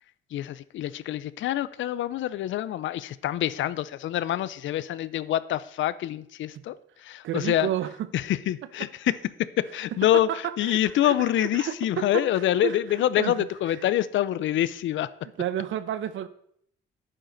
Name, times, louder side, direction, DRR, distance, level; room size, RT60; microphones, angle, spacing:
voice 1, 0.3-6.7 7.0-7.7 8.1-9.2 9.6-10.3 10.6-15.1, left 12 dB, 75° left, 0.6 m, -26 dB
voice 2, 7.2-8.1 10.1-12.8 13.2-13.3 15.4-16.3, right 11 dB, 75° right, 0.9 m, -31 dB
10.5 x 9.1 x 4.0 m
cardioid pair, 90°, 20 cm